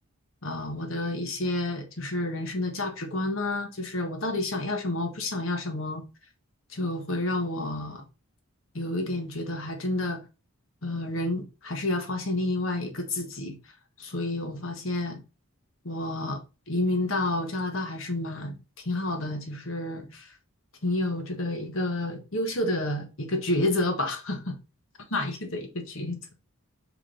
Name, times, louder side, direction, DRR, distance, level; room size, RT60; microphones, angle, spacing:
voice 1, 0.4-6.0 6.7-8.0 8.7-10.2 10.8-13.6 14.0-15.2 15.8-16.4 16.7-18.6 18.8-20.3 20.8-24.5 25.1-26.2, left 2 dB, 65° left, 1.5 m, -30 dB
5.2 x 4.8 x 3.9 m
head